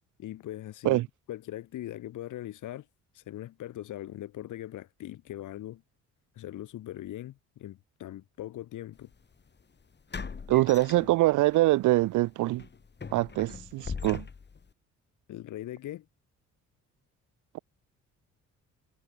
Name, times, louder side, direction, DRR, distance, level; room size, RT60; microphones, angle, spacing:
voice 1, 0.2-1.0 1.3-2.9 3.1-5.8 6.3-9.1 15.3-16.0, left 13 dB, 80° left, 6.5 m, -40 dB
sound 1, 9.0-9.1 10.1-11.6 12.0-12.2 12.6-14.7, left 5 dB, 35° left, 5.4 m, -40 dB
voice 2, 10.5-12.7 13.1-14.3, right 18 dB, 80° right, 0.6 m, -24 dB
cardioid pair, 90°, 30 cm